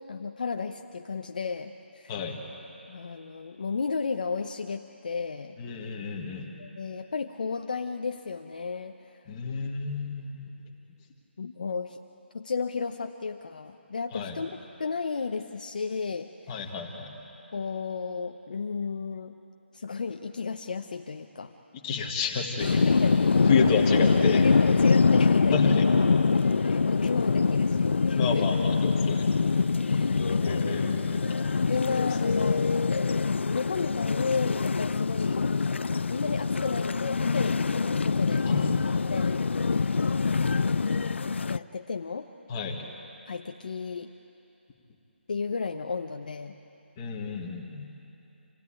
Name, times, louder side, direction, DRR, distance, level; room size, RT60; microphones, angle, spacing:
voice 1, 0.0-2.1 2.9-5.6 6.6-8.9 11.4-12.0 12.3-16.3 17.5-19.4 19.7-21.5 22.9-23.3 24.4-25.7 26.3-28.5 29.8-30.8 31.7-32.7 33.5-35.4 36.1-38.5 39.1-39.5 40.9-42.3 43.3-44.1 45.3-46.6, left 5 dB, 45° left, 5 dB, 0.8 m, -33 dB
voice 2, 2.1-2.5 5.6-6.5 9.3-10.5 14.1-14.4 16.5-17.2 21.7-22.8 23.4-24.4 25.5-25.8 28.1-29.3 30.4-31.2 38.4-38.7 42.5-42.9 47.0-47.9, left 5 dB, 15° left, 0 dB, 1.5 m, -31 dB
sound 1, 22.6-41.6, left 4 dB, 75° left, 0.5 m, -24 dB
27.0 x 16.5 x 10.0 m, 2.9 s
hypercardioid pair, 180°, 6 cm